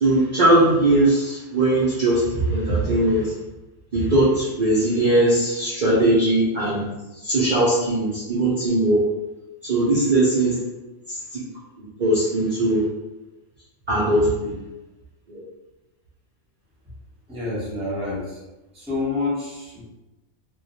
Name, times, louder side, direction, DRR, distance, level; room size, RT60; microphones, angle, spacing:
voice 1, 0.0-3.3 3.9-6.8 7.2-9.0 9.6-10.6 11.1-11.4 11.8-12.8 13.9-14.5 15.3-15.4, right 1 dB, 70° right, -8 dB, 0.4 m, -20 dB
voice 2, 17.3-18.4 18.7-19.8, left 3 dB, 5° right, -7 dB, 0.5 m, -28 dB
2.3 x 2.1 x 2.8 m, 1.0 s
omnidirectional pair, 1.5 m